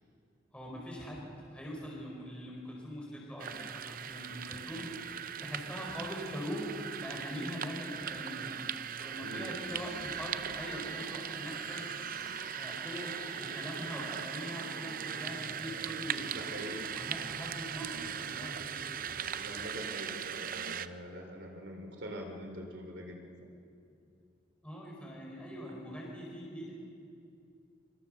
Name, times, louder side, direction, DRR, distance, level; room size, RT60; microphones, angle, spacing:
voice 1, 0.5-8.5 9.0-11.8 12.6-16.4 16.9-18.9 24.6-26.7, equal, 5° left, -3 dB, 5.1 m, -42 dB
sound 1, 3.4-20.9, right 8 dB, 50° right, 0.6 m, -39 dB
sound 2, 9.7-19.7, left 2 dB, 45° left, 3.7 m, -52 dB
voice 2, 16.3-16.9 19.3-23.2, equal, 65° right, 3 dB, 3.3 m, -44 dB
27.0 x 24.5 x 6.6 m, 2.6 s
head